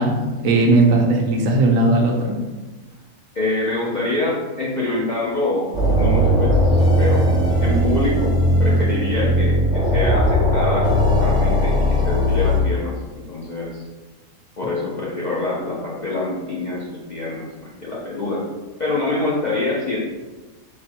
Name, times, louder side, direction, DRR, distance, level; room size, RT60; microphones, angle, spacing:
voice 1, 0.0-2.4, right 2 dB, 75° right, 0 dB, 1.1 m, -17 dB
voice 2, 3.3-13.8 14.6-18.5 18.8-20.0, left 2 dB, 50° left, -6 dB, 0.5 m, -25 dB
sound 1, 5.7-12.6, equal, 5° right, 0.6 m, -18 dB
4.3 x 2.2 x 4.3 m, 1.2 s
omnidirectional pair, 1.5 m